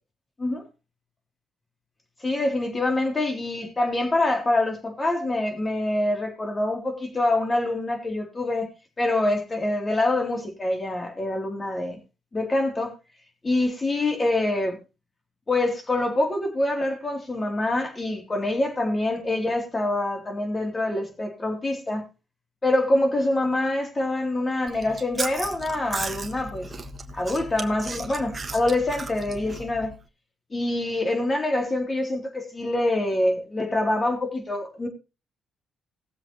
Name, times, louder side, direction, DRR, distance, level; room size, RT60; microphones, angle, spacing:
voice 1, 2.2-8.7 9.0-12.0 12.3-12.9 13.4-14.7 15.5-22.0 22.6-26.7 27.1-29.9 30.5-34.9, left 2 dB, 25° left, 3.4 m, -25 dB
Chewing mastication, 24.7-30.0, right 3 dB, 30° right, 1.3 m, -36 dB
19.0 x 7.5 x 3.1 m
cardioid pair, 90°, 0 cm